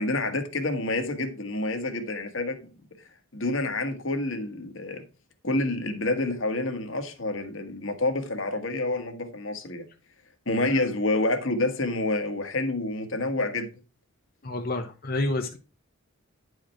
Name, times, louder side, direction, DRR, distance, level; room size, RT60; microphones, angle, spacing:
voice 1, 0.0-2.6 3.3-5.0 5.4-9.8 10.5-13.7, left 2 dB, 60° left, 1.5 m, -28 dB
voice 2, 14.4-15.6, left 2 dB, 40° left, 0.8 m, -29 dB
10.5 x 5.0 x 4.3 m
head